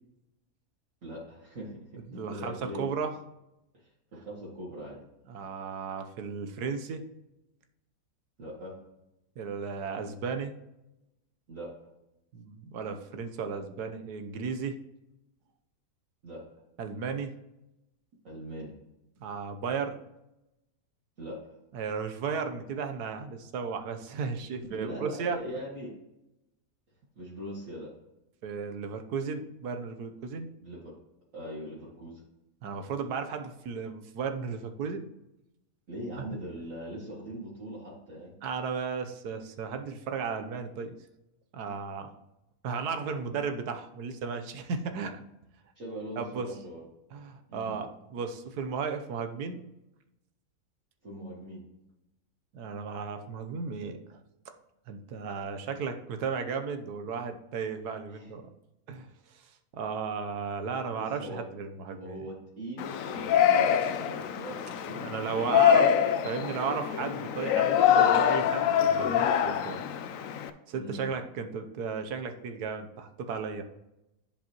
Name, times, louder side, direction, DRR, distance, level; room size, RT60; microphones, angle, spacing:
voice 1, 1.0-1.8 2.1-2.9 3.8-5.0 8.4-8.7 11.5-11.7 16.2-16.4 18.2-18.7 21.2-21.4 24.7-25.9 27.2-27.9 30.6-30.9 31.3-32.2 35.9-38.4 45.8-46.8 47.5-47.8 51.0-51.6 58.1-58.3 60.9-61.5 62.0-65.1 65.4-66.0 70.7-71.2, right 1 dB, 55° right, -6 dB, 2.2 m, -41 dB
voice 2, 2.1-3.2 5.3-7.0 9.4-10.5 12.3-14.8 16.8-17.3 19.2-20.0 21.7-25.4 28.4-30.5 32.6-35.0 38.4-40.9 41.5-42.1 42.6-45.2 46.2-46.6 47.1-49.6 52.5-54.0 54.9-58.5 58.9-59.1 59.3-59.4 59.7-62.3 65.0-65.9 66.2-69.9 70.7-73.6, right 5 dB, 85° right, 7 dB, 1.4 m, -34 dB
Yell, 62.8-70.5, left 9 dB, 65° left, 0.9 m, -25 dB
10.5 x 5.3 x 3.0 m, 0.89 s
omnidirectional pair, 1.6 m